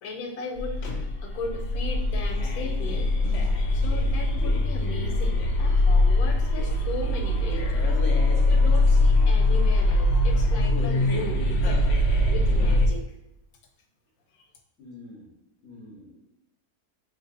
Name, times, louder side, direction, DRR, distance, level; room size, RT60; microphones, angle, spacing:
voice 1, 0.0-7.9 8.5-11.8 12.3-13.0 14.3-14.4, left 3 dB, 80° left, 3 dB, 1.1 m, -37 dB
sound 1, 0.6-12.9, left 1 dB, 60° left, 0.7 m, -22 dB
voice 2, 14.8-15.3 15.6-16.2, left 2 dB, 5° left, -6 dB, 0.9 m, -46 dB
3.0 x 2.5 x 4.0 m, 0.87 s
omnidirectional pair, 1.6 m